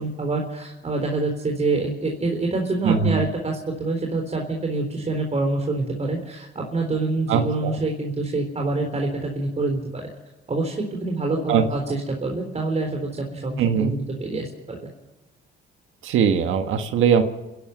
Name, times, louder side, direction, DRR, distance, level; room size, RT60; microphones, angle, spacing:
voice 1, 0.0-10.0 10.5-14.9, right 3 dB, 35° right, 1 dB, 3.9 m, -26 dB
voice 2, 2.8-3.3 7.3-7.8 11.5-11.6 13.6-13.9 16.0-17.2, right 7 dB, 85° right, 8 dB, 1.6 m, -20 dB
29.0 x 11.5 x 7.9 m, 1.0 s
cardioid pair, 90°, 20 cm